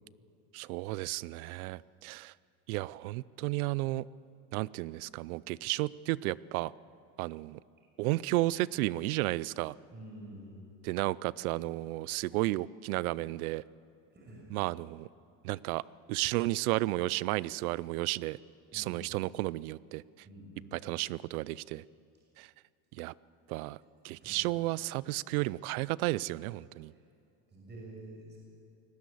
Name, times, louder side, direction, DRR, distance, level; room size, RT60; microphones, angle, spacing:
voice 1, 0.5-2.3 2.7-4.1 4.5-6.7 7.2-7.6 8.0-9.7 10.8-13.6 14.5-15.1 15.4-15.8 16.1-18.4 18.7-20.0 20.7-21.8 22.4-22.5 23.0-23.1 23.5-23.8 24.0-26.9, right 19 dB, 90° right, 22 dB, 0.5 m, -33 dB
voice 2, 9.9-10.6 14.1-14.5 18.7-19.1 20.2-20.7 24.2-24.6 26.9-27.0 27.5-28.4, right 1 dB, 25° right, -3 dB, 5.9 m, -48 dB
19.0 x 16.5 x 8.4 m, 2.4 s
supercardioid pair, 120°, 42 cm